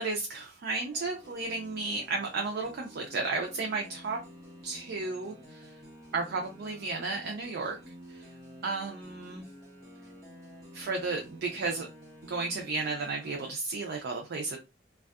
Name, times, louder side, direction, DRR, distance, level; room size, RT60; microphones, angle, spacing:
voice 1, 0.0-4.2 4.6-5.7 6.1-8.3 8.6-9.4 10.7-11.9 12.2-14.6, right 3 dB, 60° right, 1 dB, 0.4 m, -33 dB
sound 1, 0.9-13.5, equal, 20° right, 1.1 m, -51 dB
2.6 x 2.3 x 2.3 m, 0.27 s
head